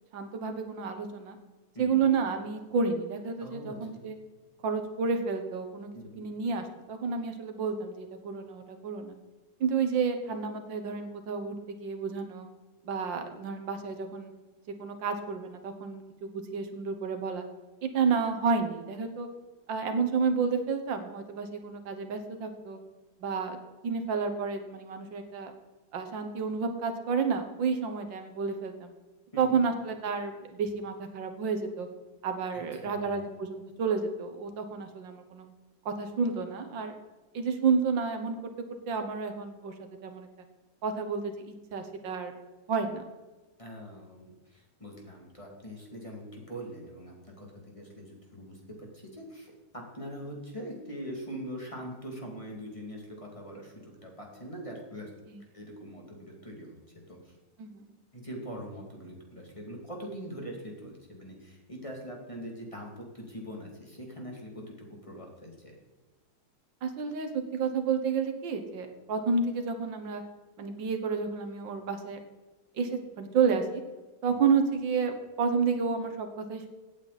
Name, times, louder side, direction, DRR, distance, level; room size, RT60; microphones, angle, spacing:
voice 1, 0.1-1.4 1.8-4.2 4.6-5.9 6.2-9.2 9.6-12.5 12.9-14.3 14.8-17.4 17.8-19.3 19.7-22.8 23.2-23.6 23.8-25.5 25.9-28.9 29.4-31.9 32.2-35.5 35.9-37.0 37.3-38.4 38.9-39.7 40.0-40.3 40.8-42.3 42.7-43.0 55.3-55.4 57.6-57.9 66.8-70.2 70.6-72.2 72.8-73.8 74.2-76.7, right 5 dB, 85° right, 6 dB, 2.0 m, -30 dB
voice 2, 3.4-4.1 5.9-6.3 29.3-29.6 32.5-33.3 43.6-55.1 55.5-56.8 57.1-57.4 58.1-65.7 74.3-74.4, equal, 15° left, -1 dB, 2.6 m, -43 dB
16.5 x 8.9 x 4.1 m, 1.2 s
omnidirectional pair, 2.0 m